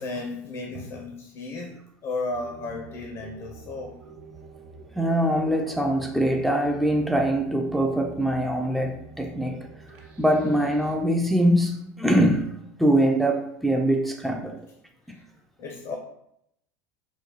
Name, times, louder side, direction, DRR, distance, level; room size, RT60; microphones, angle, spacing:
voice 1, 0.0-4.0 15.1-15.2 15.6-16.0, left 3 dB, 50° left, 1 dB, 0.6 m, -34 dB
sound 1, 2.3-11.0, right 3 dB, 65° right, 0.8 m, -47 dB
voice 2, 5.0-9.7 10.2-14.6 15.1-15.2, right 1 dB, ahead, 2 dB, 0.4 m, -23 dB
3.8 x 2.3 x 3.0 m, 0.77 s
hypercardioid pair, 95°, 8 cm